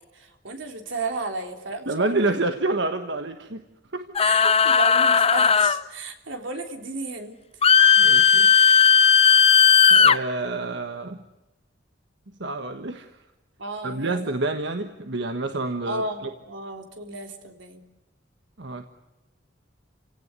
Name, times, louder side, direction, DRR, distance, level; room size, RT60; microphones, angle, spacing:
voice 1, 0.1-2.2 4.2-7.3 13.6-14.2 15.8-17.8, right 3 dB, 85° right, 5 dB, 3.6 m, -33 dB
voice 2, 1.9-3.6 3.9-4.1 8.0-8.5 9.9-11.2 12.4-13.1 13.8-16.3 18.6-19.0, right 2 dB, 65° right, 7 dB, 1.4 m, -28 dB
sound 1, 4.2-5.8 7.6-10.2, left 6 dB, 30° left, 0.8 m, -16 dB
29.5 x 17.5 x 9.6 m, 1.0 s
head